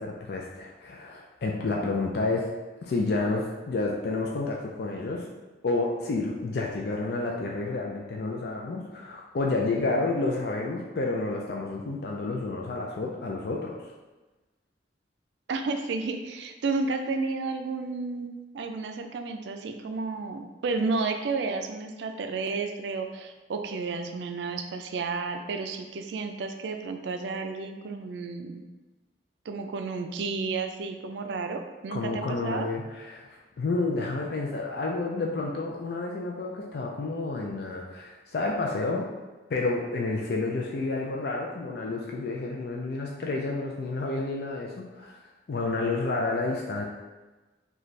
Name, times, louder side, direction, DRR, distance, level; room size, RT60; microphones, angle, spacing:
voice 1, 0.0-2.5 2.8-5.3 5.6-13.8 31.9-33.3 33.6-39.1 39.5-45.2 45.5-46.9, left 3 dB, 60° left, -1 dB, 0.4 m, -30 dB
voice 2, 15.5-28.6 29.5-32.7, right 4 dB, 75° right, 5 dB, 0.4 m, -32 dB
3.1 x 2.3 x 4.0 m, 1.2 s
head